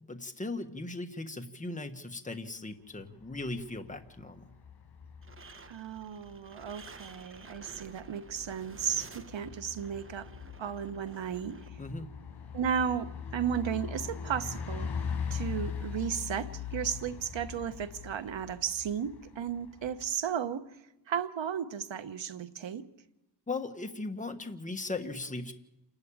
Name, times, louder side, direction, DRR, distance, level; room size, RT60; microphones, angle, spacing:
voice 1, 0.1-4.5 11.8-12.1 23.5-25.5, left 2 dB, 15° left, 6 dB, 1.5 m, -38 dB
Bus, 3.0-20.1, left 6 dB, 65° left, 4.9 m, -42 dB
sound 1, 5.2-11.7, right 4 dB, 30° right, 1.0 m, -53 dB
voice 2, 5.7-10.3 10.6-11.8 12.5-14.9 15.3-20.7 21.1-22.9, right 8 dB, 80° right, 12 dB, 1.1 m, -34 dB
28.0 x 12.0 x 8.7 m, 0.96 s
wide cardioid pair, 95°, 44 cm